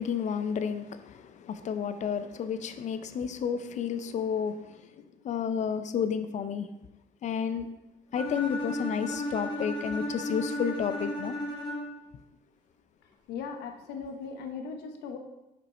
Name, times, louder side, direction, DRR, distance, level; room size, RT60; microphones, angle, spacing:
voice 1, 0.0-6.7 7.2-7.7 8.1-11.3, left 7 dB, 45° left, 11 dB, 0.5 m, -31 dB
Bowed string instrument, 8.1-12.1, left 1 dB, 25° left, 1.3 m, -34 dB
voice 2, 13.3-15.2, left 5 dB, 80° left, 4 dB, 0.8 m, -38 dB
5.3 x 4.4 x 4.1 m, 0.96 s
cardioid pair, 110°, 17 cm